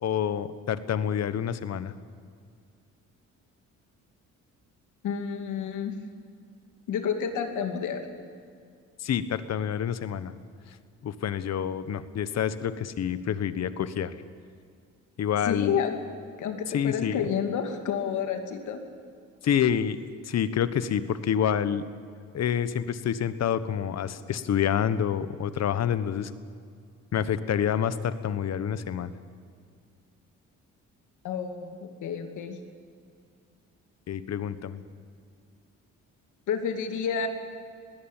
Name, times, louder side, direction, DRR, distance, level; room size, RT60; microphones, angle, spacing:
voice 1, 0.0-1.9 9.0-10.3 11.0-14.1 15.2-15.7 16.7-17.2 19.4-20.0 20.3-21.8 22.3-26.3 27.1-29.1 34.1-34.8, left 9 dB, 60° left, 14 dB, 1.3 m, -27 dB
voice 2, 5.0-5.9 6.9-8.0 15.4-16.0 16.4-18.8 31.2-32.6 36.5-37.3, left 7 dB, 80° left, 6 dB, 2.6 m, -30 dB
21.0 x 17.0 x 9.1 m, 2.2 s
cardioid pair, 90°, 30 cm